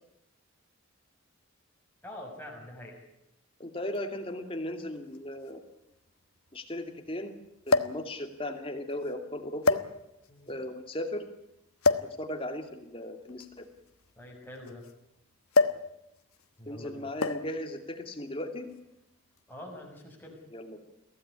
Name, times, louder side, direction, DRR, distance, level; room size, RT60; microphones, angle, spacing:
voice 1, 2.0-3.0 10.3-10.5 14.2-14.8 16.6-17.0 19.5-20.3, left 1 dB, 10° left, -2 dB, 6.5 m, -45 dB
voice 2, 3.6-5.6 6.5-7.4 7.7-9.8 10.5-11.2 12.2-13.7 16.7-18.7 20.5-20.8, left 1 dB, 25° left, 5 dB, 2.6 m, -37 dB
sound 1, 3.9-4.0 5.1-5.2 5.5-5.6 7.7-8.1 8.9-9.1 9.6-10.3 11.8-12.2 13.3-14.9 15.5-15.9 16.2-16.4 17.2-17.6 18.5-18.8, left 3 dB, 90° left, 1.2 m, -27 dB
23.0 x 16.5 x 9.8 m, 0.86 s
head